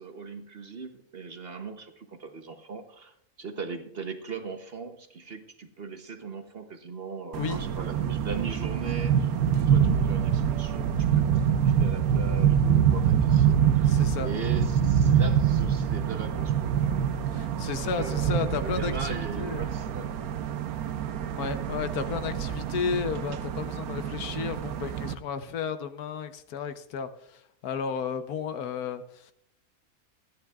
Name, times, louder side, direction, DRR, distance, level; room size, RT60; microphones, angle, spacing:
voice 1, 0.0-17.1 18.0-20.2, right 4 dB, 45° right, 7 dB, 1.0 m, -39 dB
sound 1, 7.3-25.1, right 8 dB, 75° right, 1.2 m, -25 dB
voice 2, 13.8-14.3 17.3-19.7 21.3-29.3, left 6 dB, 75° left, 10 dB, 1.3 m, -33 dB
25.5 x 10.0 x 2.4 m, 0.71 s
omnidirectional pair, 1.6 m